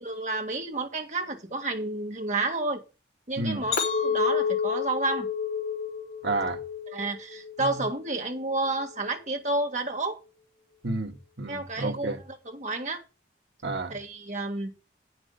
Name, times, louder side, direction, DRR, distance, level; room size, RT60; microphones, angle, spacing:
voice 1, 0.0-2.8 3.3-3.8 4.0-5.3 6.9-10.2 11.5-13.0 13.9-14.7, right 2 dB, 40° right, 1.9 m, -30 dB
Chink clink, 3.7-8.1 8.5-9.0, left 6 dB, 55° left, 3.0 m, -30 dB
voice 2, 6.2-6.6 10.8-12.2 13.6-14.0, right 2 dB, 70° right, 1.7 m, -30 dB
9.3 x 6.3 x 6.6 m
head